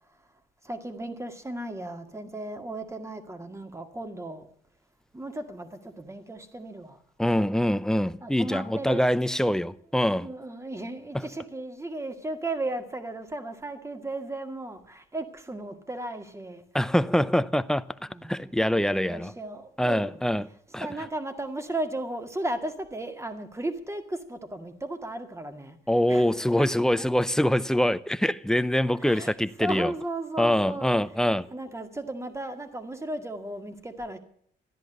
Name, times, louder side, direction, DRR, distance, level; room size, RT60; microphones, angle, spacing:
voice 1, 0.6-4.5 5.1-7.0 8.2-9.1 10.2-16.6 18.1-20.2 20.8-25.8 26.1-26.7 27.0-27.1 29.0-34.2, right 1 dB, 15° right, 2.0 m, -35 dB
voice 2, 7.2-10.3 16.7-17.8 18.3-19.3 19.8-20.4 20.7-20.9 25.9-29.9 30.4-31.5, left 1 dB, 5° left, 0.6 m, -24 dB
13.5 x 10.5 x 8.0 m
cardioid pair, 90°, 20 cm